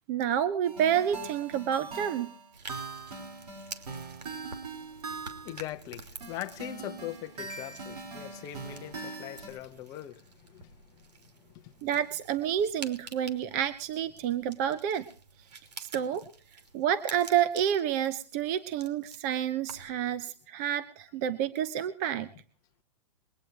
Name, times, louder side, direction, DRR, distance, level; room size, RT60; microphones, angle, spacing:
voice 1, 0.1-2.3 11.8-15.0 15.8-16.2 16.7-22.3, right 9 dB, 25° right, 0.7 m, -29 dB
sound 1, 0.6-5.7 6.2-9.5, right 4 dB, 65° right, 6.5 m, -42 dB
sound 2, 2.5-20.0, right 4 dB, 90° right, 3.0 m, -49 dB
voice 2, 5.4-10.2 10.5-10.7 11.6-11.7, left 14 dB, 15° left, 0.8 m, -41 dB
22.5 x 9.3 x 4.6 m
hypercardioid pair, 170°, 21 cm